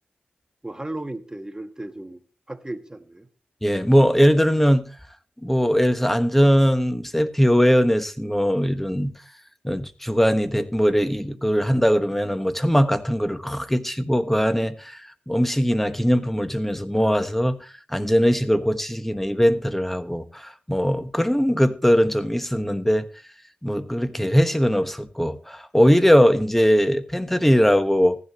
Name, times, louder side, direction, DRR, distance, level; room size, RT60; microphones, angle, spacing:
voice 1, 0.6-2.2 2.5-3.3, right 1 dB, 20° right, 1.4 m, -35 dB
voice 2, 3.6-4.8 5.4-9.1 9.6-23.1 23.6-28.2, equal, 5° left, 1.2 m, -20 dB
15.0 x 11.0 x 3.1 m
cardioid pair, 45°, 4 cm